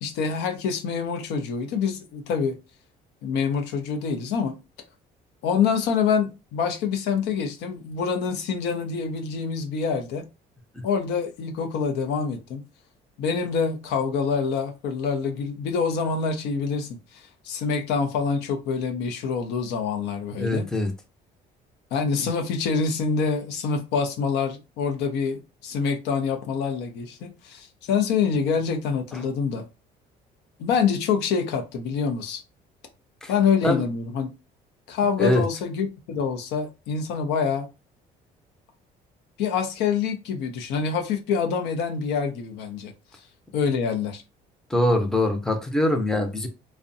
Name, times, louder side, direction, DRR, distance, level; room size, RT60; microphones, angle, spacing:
voice 1, 0.0-2.6 3.2-4.6 5.4-10.2 10.8-12.6 13.2-20.7 21.9-29.6 30.6-32.4 33.3-34.3 34.9-37.7 39.4-42.9 43.5-44.2, left 6 dB, 90° left, 0.6 m, -26 dB
voice 2, 20.4-20.9 29.1-29.2 33.2-33.3 33.6-33.8 35.2-35.4 44.7-46.5, left 1 dB, 5° left, 0.5 m, -23 dB
2.6 x 2.1 x 2.5 m
cardioid pair, 110°, 17 cm